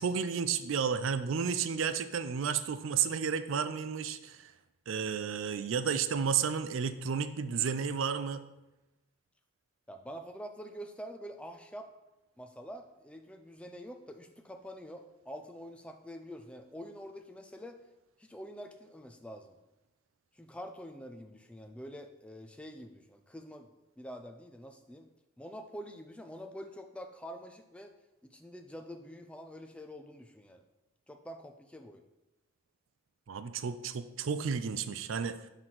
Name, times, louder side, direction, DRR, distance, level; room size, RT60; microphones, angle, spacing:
voice 1, 0.0-4.5 4.9-8.4 33.3-35.4, right 6 dB, 70° right, 12 dB, 0.4 m, -32 dB
voice 2, 9.9-11.9 12.4-17.8 18.2-19.6 20.3-23.7 24.0-25.1 25.4-27.9 28.2-30.6 31.1-32.0, equal, 5° left, 5 dB, 0.4 m, -46 dB
6.2 x 3.8 x 5.9 m, 0.99 s
head